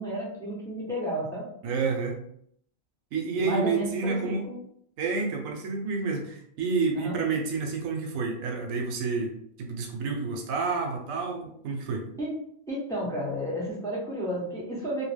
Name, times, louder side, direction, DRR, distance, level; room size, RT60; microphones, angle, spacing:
voice 1, 0.0-1.5 3.4-4.6 6.9-7.2 12.2-12.3 12.7-15.0, equal, 5° left, -7 dB, 0.9 m, -32 dB
voice 2, 1.6-2.2 3.1-4.4 5.0-9.3 9.6-12.1, right 4 dB, 90° right, 3 dB, 1.0 m, -29 dB
2.4 x 2.1 x 3.2 m, 0.68 s
omnidirectional pair, 1.4 m